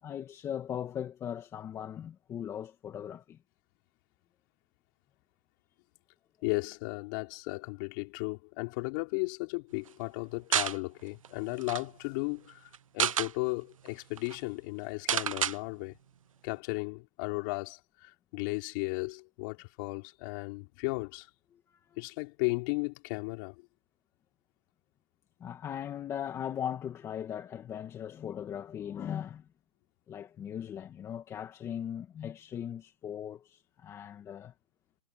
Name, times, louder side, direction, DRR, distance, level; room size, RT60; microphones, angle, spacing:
voice 1, 0.0-3.4 21.7-21.8 25.4-29.5 30.1-34.5, left 9 dB, 15° left, 2.1 m, -39 dB
voice 2, 6.4-15.9 16.4-21.3 22.0-23.5, left 29 dB, 35° left, 4.8 m, -35 dB
sound 1, 10.5-10.8 11.2-11.3 11.6-11.8 12.7-13.3 13.9-14.0 14.2-14.4 15.1-15.6, right 9 dB, 85° right, 1.0 m, -29 dB
hypercardioid pair, 155°, 17 cm